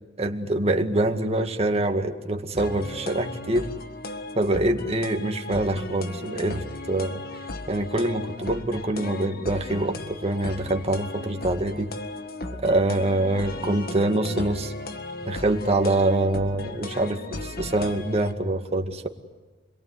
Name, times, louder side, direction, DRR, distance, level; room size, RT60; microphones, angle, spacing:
voice 1, 0.2-3.6 4.4-7.2 7.7-11.9 12.6-14.7 15.3-19.1, right 1 dB, 35° right, 4 dB, 2.0 m, -25 dB
sound 1, 2.6-18.3, left 2 dB, 55° left, 1.8 m, -36 dB
27.0 x 22.0 x 9.7 m, 1.3 s
head